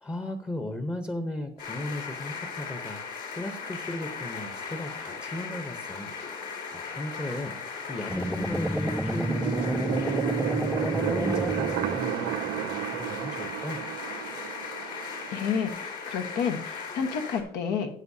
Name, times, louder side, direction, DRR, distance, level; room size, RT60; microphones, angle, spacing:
voice 1, 0.0-3.0 3.3-6.1 6.7-10.2 10.6-13.8, left 1 dB, 15° left, 7 dB, 0.8 m, -36 dB
sound 1, 1.6-17.4, left 5 dB, 70° left, 3.4 m, -38 dB
sound 2, 8.1-12.4, equal, ahead, 0.3 m, -30 dB
sound 3, 9.2-15.7, right 12 dB, 85° right, 0.5 m, -32 dB
voice 2, 15.3-18.0, left 6 dB, 85° left, 4 dB, 1.3 m, -30 dB
13.0 x 9.3 x 2.7 m, 0.66 s
cardioid pair, 110°, 17 cm